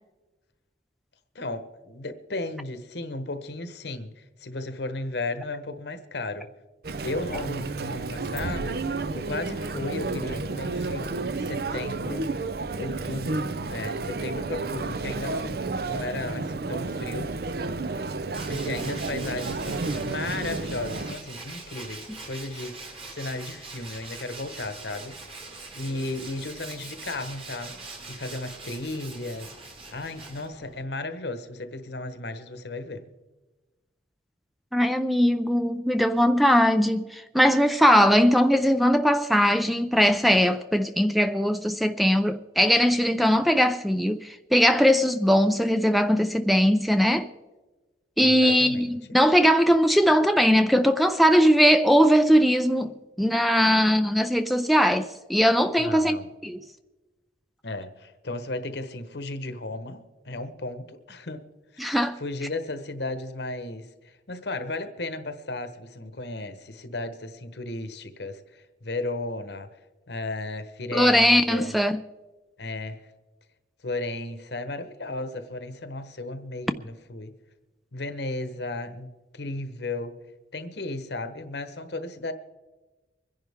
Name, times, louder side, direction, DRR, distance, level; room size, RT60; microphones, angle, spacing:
voice 1, 1.3-6.5 7.0-8.8 9.1-11.1 11.4-12.3 12.8-17.3 18.5-22.8 23.1-25.2 25.7-27.7 28.1-33.1 48.2-49.2 55.8-56.3 57.6-61.4 61.7-69.7 70.1-71.8 72.6-73.0 73.8-77.3 77.9-80.1 80.5-82.3, left 2 dB, 65° left, 1.1 m, -35 dB
Chatter, 6.8-21.2, right 3 dB, 55° right, 0.6 m, -31 dB
Tools, 18.3-30.8, right 3 dB, 30° right, 1.8 m, -42 dB
voice 2, 34.7-47.3 48.2-52.9 53.2-56.2 56.4-56.6 61.8-62.2 70.9-72.0, equal, ahead, 0.4 m, -20 dB
24.5 x 10.5 x 3.6 m
head